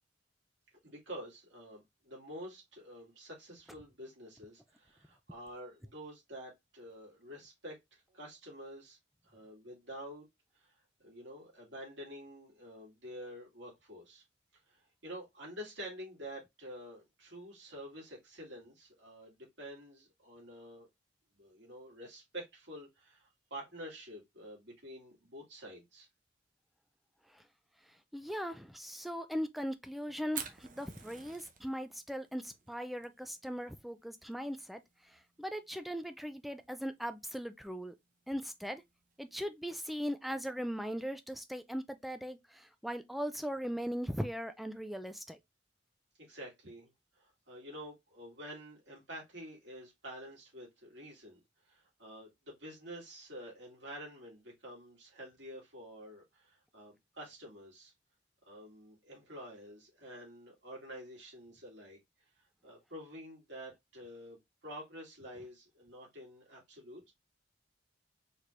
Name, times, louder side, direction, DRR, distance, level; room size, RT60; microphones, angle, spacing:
voice 1, 0.8-9.0 9.2-10.3 10.5-10.7 11.0-14.2 14.7-20.9 21.3-26.1 46.2-46.9 47.2-51.4 51.7-57.9 58.5-62.0 62.6-64.4 64.6-67.1, equal, 70° right, 2.5 m, -48 dB
voice 2, 28.1-34.8 35.4-37.9 38.3-38.8 39.2-45.4, equal, ahead, 0.3 m, -39 dB
Fire, 30.3-40.0, right 7 dB, 45° right, 0.7 m, -51 dB
4.4 x 3.3 x 2.5 m
head